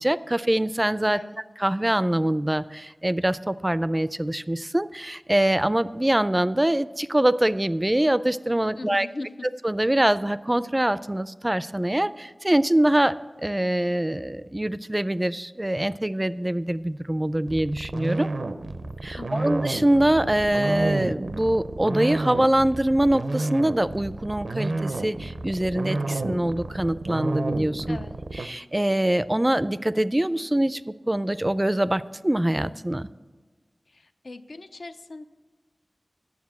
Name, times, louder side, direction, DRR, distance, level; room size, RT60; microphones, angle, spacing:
voice 1, 0.0-1.2 1.6-9.1 9.6-18.3 19.0-28.0 28.3-33.1, right 1 dB, 20° right, 15 dB, 0.3 m, -24 dB
voice 2, 8.8-9.3 19.2-19.5 27.9-28.2 33.9-35.2, left 2 dB, 80° left, 8 dB, 0.6 m, -39 dB
sound 1, 17.5-28.5, right 2 dB, 85° right, 0.6 m, -30 dB
9.5 x 7.2 x 7.3 m, 1.4 s
wide cardioid pair, 60°, 0 cm